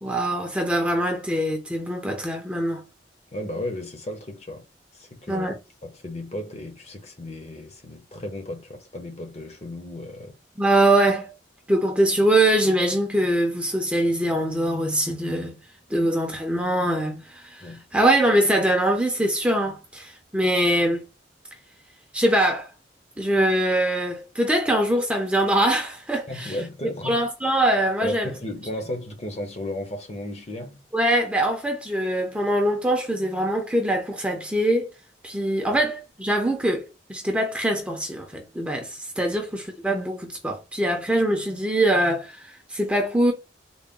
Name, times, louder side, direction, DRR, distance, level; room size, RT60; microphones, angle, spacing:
voice 1, 0.0-2.8 5.3-5.5 10.6-11.3 11.7-15.6 15.9-21.1 22.1-22.7 23.2-26.6 27.0-28.3 30.9-34.9 35.2-43.3, right 1 dB, 5° right, 0.5 m, -23 dB
voice 2, 3.3-4.7 4.9-5.5 5.8-10.4 17.6-17.8 26.3-27.2 28.0-30.8 35.6-35.8 39.3-39.4, left 1 dB, 35° left, 0.7 m, -34 dB
3.8 x 2.1 x 3.6 m
head